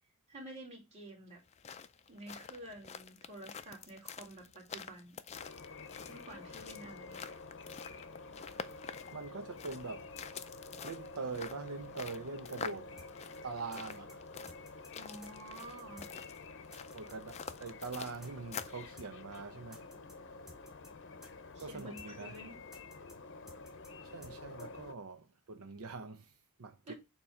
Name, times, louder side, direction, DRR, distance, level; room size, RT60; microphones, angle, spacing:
voice 1, 0.3-1.4 2.1-5.2 6.1-7.3 15.0-16.0 21.5-22.6 26.8-26.9, right 1 dB, 30° right, 2.4 m, -50 dB
sound 1, 1.4-18.9, left 6 dB, 30° left, 0.4 m, -47 dB
sound 2, 5.3-24.9, left 3 dB, 55° left, 0.7 m, -50 dB
voice 2, 9.1-10.1 10.8-12.9 13.4-14.2 16.9-19.9 21.6-22.4 24.0-26.3 26.6-26.9, right 4 dB, 85° right, 0.7 m, -43 dB
sound 3, 13.0-13.1 13.3-13.4 13.7-14.2 14.5-14.9 15.2-15.3 15.6-16.1 16.3-16.4 16.7-17.2 17.5-17.9 18.2-18.3 18.6-18.7 19.0-19.1 19.3-19.4 19.7-20.2 20.5-20.9 21.2-21.3 21.6-22.1 22.3-22.4 22.7-23.2 23.5-23.9 24.2-24.3 24.6-24.7, left 1 dB, ahead, 1.1 m, -55 dB
7.0 x 3.0 x 4.8 m
head